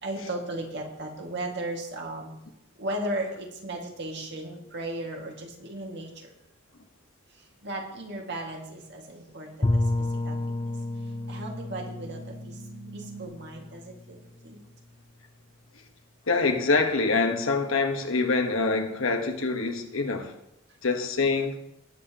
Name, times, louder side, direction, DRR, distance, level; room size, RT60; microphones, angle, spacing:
voice 1, 0.0-2.3 2.8-6.3 7.4-10.7 11.3-12.6 12.9-14.6, right 1 dB, 55° right, 1 dB, 2.1 m, -36 dB
sound 1, 8.0-8.1 9.0-13.3, right 6 dB, 75° right, 3.7 m, -50 dB
Bowed string instrument, 9.6-14.4, left 2 dB, 25° left, 0.6 m, -31 dB
voice 2, 16.3-20.3 20.8-21.6, left 3 dB, 80° left, 4 dB, 1.4 m, -25 dB
19.5 x 7.3 x 3.0 m, 0.84 s
head